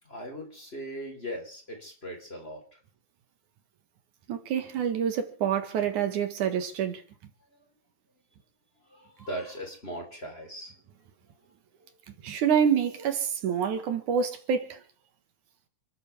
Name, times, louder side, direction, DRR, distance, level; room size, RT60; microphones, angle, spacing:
voice 1, 0.0-2.8 7.5-7.7 8.8-10.8, equal, 20° left, 3.8 m, -39 dB
voice 2, 4.3-7.0 12.2-14.8, right 8 dB, 75° right, 2.9 m, -27 dB
29.0 x 13.5 x 3.4 m
omnidirectional pair, 3.6 m